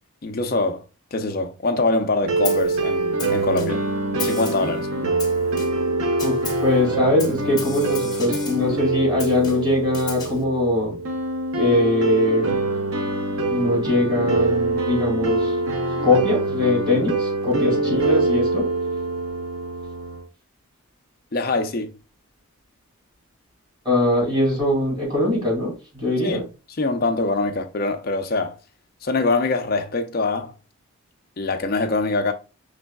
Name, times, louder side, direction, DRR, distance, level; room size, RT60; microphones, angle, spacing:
voice 1, 0.2-0.8 1.1-3.8 4.2-4.9 17.5-17.8 21.3-21.9 26.2-26.5 26.8-28.6 29.0-30.5 31.4-32.3, left 3 dB, 45° left, 0.5 m, -24 dB
sound 1, 2.2-20.2, right 2 dB, 70° right, 0.7 m, -24 dB
Snare drum, 2.4-2.8 3.2-3.9 4.2-4.8 5.2-5.9 6.2-6.7 7.2-8.7 9.2-10.4, left 5 dB, 20° left, 0.8 m, -35 dB
voice 2, 6.2-10.9 11.6-12.5 13.5-15.5 16.0-18.6 23.8-26.4, left 2 dB, 20° right, 2.4 m, -21 dB
5.4 x 3.3 x 2.2 m
head